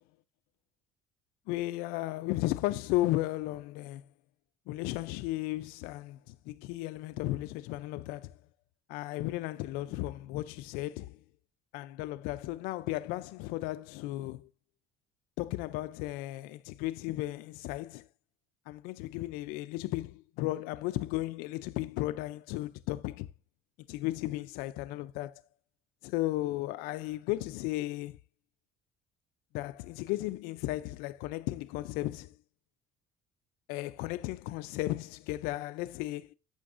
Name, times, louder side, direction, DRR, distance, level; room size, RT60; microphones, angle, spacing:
voice 1, 1.5-4.0 4.7-8.3 8.9-11.2 11.7-14.5 15.4-18.0 18.7-23.3 23.9-25.3 26.0-28.2 29.5-32.3 33.7-36.3, left 17 dB, 90° left, 0.4 m, -35 dB
11.5 x 7.8 x 2.5 m
cardioid pair, 135°, 15 cm